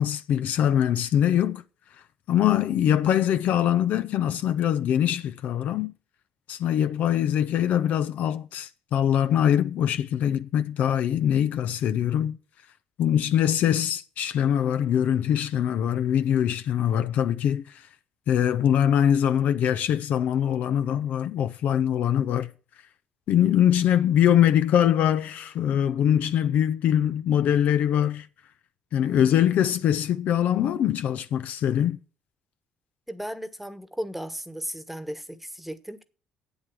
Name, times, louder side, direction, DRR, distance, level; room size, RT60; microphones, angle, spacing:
voice 1, 0.0-1.6 2.3-5.9 6.5-12.4 13.0-17.8 18.3-22.5 23.3-28.3 28.9-32.0, left 10 dB, 65° left, 0.5 m, -23 dB
voice 2, 33.1-36.0, equal, 5° right, 1.2 m, -35 dB
8.1 x 7.9 x 7.7 m
hypercardioid pair, 55°, 3 cm